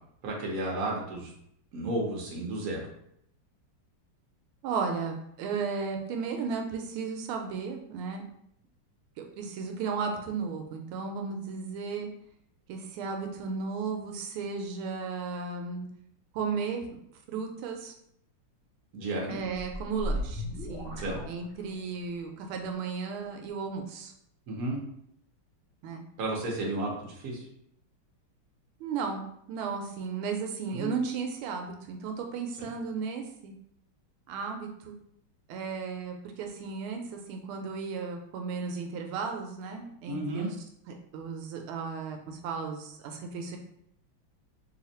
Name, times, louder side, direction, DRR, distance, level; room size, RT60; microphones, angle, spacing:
voice 1, 0.2-1.3 1.7-2.9 18.9-19.4 21.0-21.2 24.5-24.8 26.2-27.4 30.7-30.9 32.6-32.7 40.1-40.5, right 2 dB, 50° right, -2 dB, 1.2 m, -32 dB
voice 2, 4.6-8.2 9.4-12.1 12.7-15.9 16.3-16.9 17.3-17.9 19.3-20.9 21.3-24.1 25.8-26.0 28.8-33.5 34.3-34.9 35.5-40.6 41.1-43.6, right 5 dB, 85° right, 3 dB, 1.5 m, -34 dB
sound 1, 19.3-22.0, equal, 55° left, 0.6 m, -36 dB
3.5 x 2.4 x 4.1 m, 0.72 s
omnidirectional pair, 2.3 m